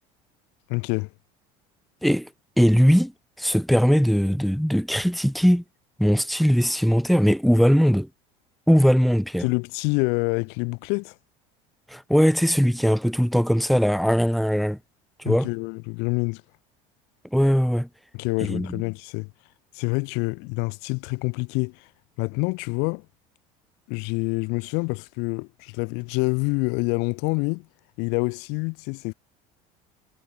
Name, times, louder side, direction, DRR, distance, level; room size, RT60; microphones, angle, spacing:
voice 1, 0.7-1.1 9.4-11.2 15.3-16.4 18.1-19.3 19.7-21.9 22.2-23.1 23.9-27.7 28.0-29.1, left 32 dB, 70° left, 2.2 m, -27 dB
voice 2, 2.6-3.1 3.4-5.6 6.0-8.1 8.7-9.5 11.9-14.8 15.2-15.5 17.3-17.9 18.5-18.8, equal, ahead, 1.7 m, -20 dB
supercardioid pair, 95°, 18 cm